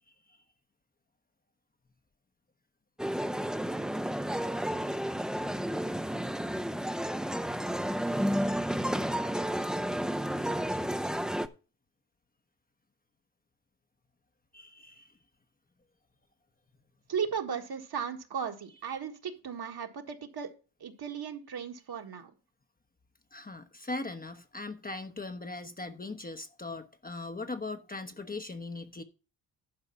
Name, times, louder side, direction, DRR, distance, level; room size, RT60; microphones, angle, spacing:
voice 1, 0.1-0.4 7.8-8.3 14.5-15.1 23.3-29.0, left 3 dB, 20° left, 1.0 m, -40 dB
sound 1, 3.0-11.5, equal, ahead, 0.7 m, -31 dB
voice 2, 17.1-20.5 20.8-22.3, right 7 dB, 50° right, 1.8 m, -36 dB
11.5 x 4.8 x 5.7 m
supercardioid pair, 60°, 48 cm